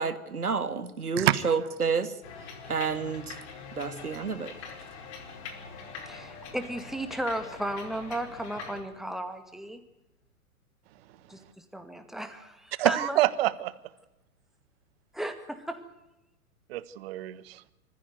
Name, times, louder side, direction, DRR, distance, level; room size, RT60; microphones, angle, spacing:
voice 1, 0.0-2.2 2.7-3.4 3.8-4.5, right 5 dB, 80° right, 11 dB, 2.0 m, -29 dB
sound 1, 2.2-8.8, left 5 dB, 50° left, 4.9 m, -43 dB
voice 2, 6.1-9.8 11.3-11.4 11.7-13.2 15.1-15.8, right 1 dB, ahead, 6 dB, 2.1 m, -34 dB
voice 3, 12.8-13.7 16.7-17.6, right 15 dB, 40° right, 16 dB, 1.3 m, -26 dB
25.0 x 15.0 x 9.4 m, 0.95 s
figure-of-eight pair, 110°, 44 cm